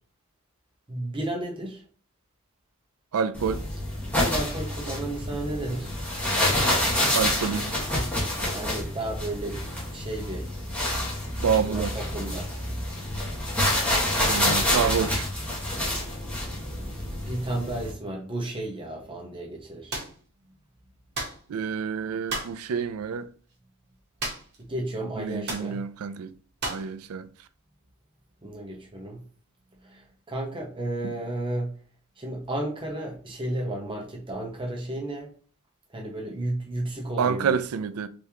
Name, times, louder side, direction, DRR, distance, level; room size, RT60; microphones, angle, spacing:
voice 1, 0.9-1.8 4.1-6.0 8.3-9.6 9.9-10.5 10.7-10.9 11.4-12.5 16.8-20.0 24.6-25.8 28.4-29.2 29.8-31.7 32.2-35.3 35.9-37.5, right 1 dB, 25° right, 0.9 m, -33 dB
voice 2, 3.1-3.6 7.1-7.7 11.4-11.9 14.2-15.3 21.5-23.3 25.2-26.3 26.6-27.3 31.0-31.1 37.2-38.1, right 6 dB, 75° right, 0.4 m, -28 dB
sound 1, 3.3-17.9, left 1 dB, 5° left, 1.4 m, -28 dB
sound 2, 19.9-20.2 21.1-21.4 22.3-22.6 24.2-24.6 24.9-25.0 25.5-25.7 26.6-26.9, right 2 dB, 50° right, 1.1 m, -32 dB
3.5 x 3.2 x 2.9 m
head